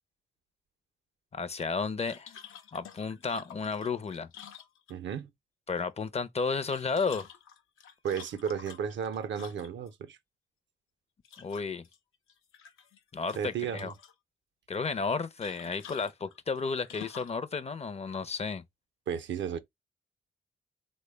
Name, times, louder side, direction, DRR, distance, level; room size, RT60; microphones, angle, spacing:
voice 1, 1.3-2.3 2.7-4.3 5.7-7.3 11.4-11.8 13.1-13.9 14.7-18.6, left 4 dB, 30° left, 0.4 m, -32 dB
sound 1, 2.1-5.2 6.5-9.9 11.2-12.0 12.3-13.0 13.3-14.1 15.4-17.4, left 8 dB, 85° left, 0.5 m, -50 dB
voice 2, 4.9-5.3 8.0-10.2 13.4-13.9 19.1-19.6, right 8 dB, 65° right, 0.5 m, -33 dB
3.3 x 2.1 x 3.1 m
supercardioid pair, 55°, 21 cm